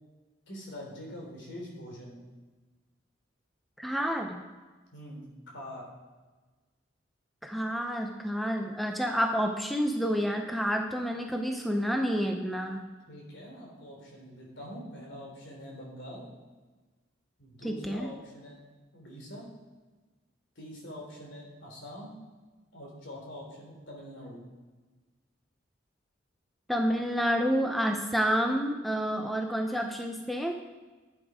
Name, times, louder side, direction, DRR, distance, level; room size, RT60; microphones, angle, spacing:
voice 1, 0.5-2.2 4.9-5.3 5.5-5.9 13.1-16.3 17.4-18.6 18.9-19.5 20.6-22.1 22.7-24.4, equal, 65° left, -1 dB, 3.4 m, -44 dB
voice 2, 3.8-4.4 7.4-12.8 17.6-18.1 26.7-30.5, equal, ahead, 3 dB, 0.6 m, -29 dB
11.5 x 8.2 x 5.0 m, 1.3 s
head